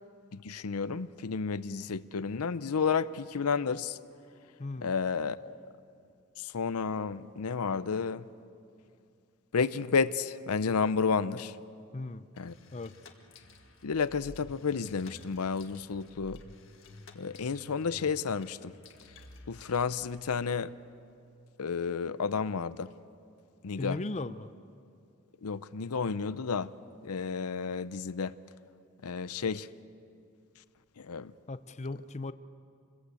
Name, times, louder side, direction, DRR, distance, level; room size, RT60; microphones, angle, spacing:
voice 1, 0.3-4.0 4.8-5.6 6.4-8.2 9.5-11.5 12.4-12.5 13.8-16.4 17.2-18.7 19.5-20.7 21.6-22.9 23.6-24.0 25.4-26.7 27.0-28.3 29.0-29.7 31.0-31.3, left 5 dB, 85° left, 14 dB, 0.6 m, -31 dB
voice 2, 4.6-4.9 11.9-12.3 12.7-12.9 23.8-24.5 31.5-32.3, left 2 dB, 30° left, 12 dB, 0.6 m, -37 dB
sound 1, 12.4-20.4, left 2 dB, 60° left, 1.7 m, -53 dB
26.5 x 21.0 x 8.4 m, 2.5 s
head